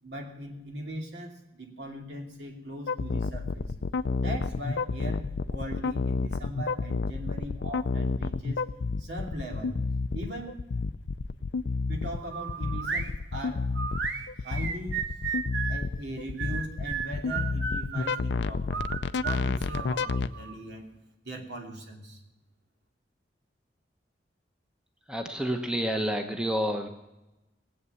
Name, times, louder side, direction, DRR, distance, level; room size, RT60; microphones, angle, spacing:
voice 1, 0.0-3.7 4.2-8.6 9.0-9.8 10.1-10.6 11.9-13.7 14.4-15.2 15.7-18.9 19.2-20.9 21.2-22.2, right 1 dB, 70° right, 1 dB, 2.8 m, -39 dB
sound 1, 2.9-20.3, left 4 dB, 75° left, 0.5 m, -30 dB
sound 2, 12.3-13.1 13.7-15.8 16.4-18.2 18.7-20.6, right 6 dB, 85° right, 1.1 m, -34 dB
voice 2, 25.1-26.9, equal, 5° right, 4 dB, 1.0 m, -29 dB
19.5 x 8.2 x 6.9 m, 0.99 s
head